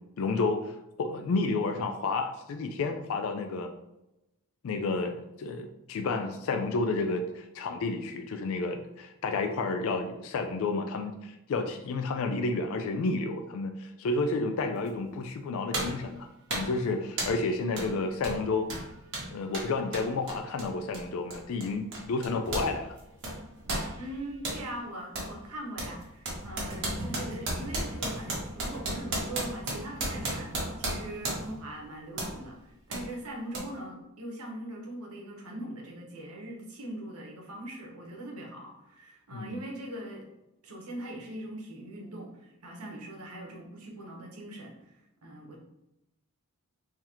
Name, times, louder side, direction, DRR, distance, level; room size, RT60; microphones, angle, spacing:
voice 1, 0.2-3.7 4.6-18.7 19.3-23.0 39.3-39.6, left 3 dB, 65° left, 6 dB, 0.3 m, -31 dB
sound 1, 14.9-15.0 15.7-16.0 16.5-16.8 17.2-17.4 17.8-17.9 18.2-22.7 23.0-24.6 25.1-25.3 25.8-31.6 32.2-32.4 32.9-33.0 33.5-33.6, right 1 dB, 55° right, 1.1 m, -34 dB
voice 2, 24.0-40.3 40.6-45.6, right 1 dB, 80° right, 0 dB, 1.0 m, -41 dB
3.8 x 2.8 x 2.9 m, 0.91 s
head